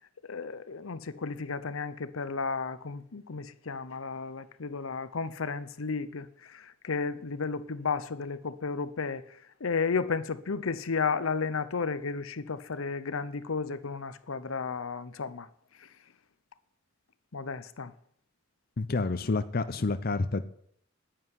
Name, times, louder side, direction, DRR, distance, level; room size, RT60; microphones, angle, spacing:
voice 1, 0.2-15.5 15.8-15.9 17.3-17.9, left 5 dB, 80° left, 0.7 m, -33 dB
voice 2, 18.8-20.4, left 3 dB, 45° left, 0.6 m, -29 dB
9.9 x 7.7 x 9.6 m
head